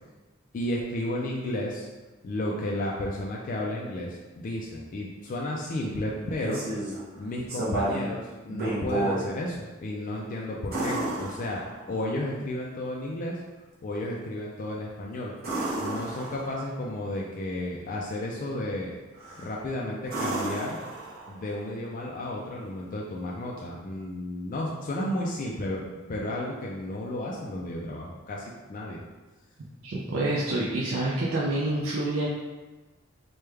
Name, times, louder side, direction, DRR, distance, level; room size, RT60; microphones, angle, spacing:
voice 1, 0.5-1.9 2.2-6.6 7.2-11.6 11.9-13.4 13.8-15.3 15.8-18.9 19.4-20.8 21.3-29.0, left 1 dB, 40° left, -3 dB, 0.3 m, -33 dB
sound 1, 6.2-7.0 7.5-8.1 8.5-9.2 10.7-12.0 15.4-16.7 19.2-19.6 20.1-21.5 23.6-23.7, right 2 dB, 50° right, 0.8 m, -31 dB
voice 2, 29.8-32.3, right 2 dB, 70° right, -5 dB, 0.4 m, -27 dB
3.2 x 2.2 x 3.3 m, 1.2 s
head